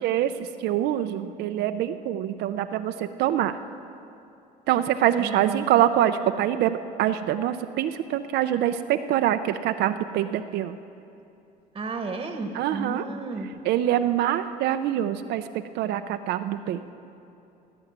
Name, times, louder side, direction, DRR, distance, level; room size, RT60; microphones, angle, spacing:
voice 1, 0.0-3.6 4.7-10.8 12.5-13.1 13.6-16.8, right 11 dB, 80° right, 9 dB, 0.5 m, -25 dB
voice 2, 5.2-5.8 11.7-13.6, right 3 dB, 30° right, 5 dB, 1.2 m, -33 dB
17.0 x 7.1 x 9.3 m, 2.7 s
cardioid pair, 110°, 17 cm